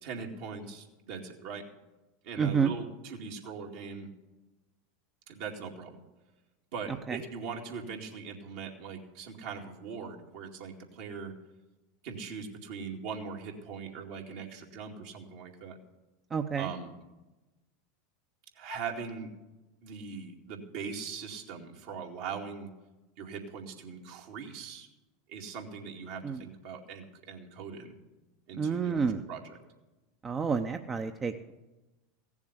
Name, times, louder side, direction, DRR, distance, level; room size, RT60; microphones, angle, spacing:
voice 1, 0.0-1.6 2.2-4.1 5.3-6.0 6.7-11.3 12.0-15.8 16.6-17.0 18.5-19.3 19.8-22.7 23.2-24.9 25.3-28.0 28.5-29.0 29.3-29.4, right 5 dB, 65° right, 1 dB, 2.2 m, -41 dB
voice 2, 2.4-2.7 7.1-7.2 16.3-16.7 26.2-26.4 28.6-29.2 30.2-31.5, right 6 dB, 25° right, 6 dB, 0.8 m, -29 dB
16.0 x 7.2 x 8.0 m, 1.1 s
hypercardioid pair, 85°, 0 cm